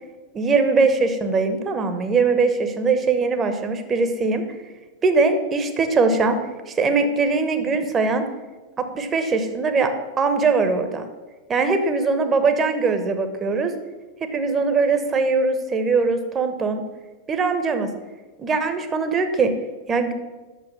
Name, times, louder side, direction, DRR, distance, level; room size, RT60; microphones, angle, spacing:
voice 1, 0.3-4.4 5.0-8.2 8.8-9.9 10.2-11.1 11.5-13.7 14.2-16.8 17.3-17.9 18.4-19.5 19.9-20.1, right 4 dB, 20° right, 7 dB, 1.1 m, -21 dB
8.5 x 6.5 x 7.0 m, 1.2 s
figure-of-eight pair, 90°, 0 cm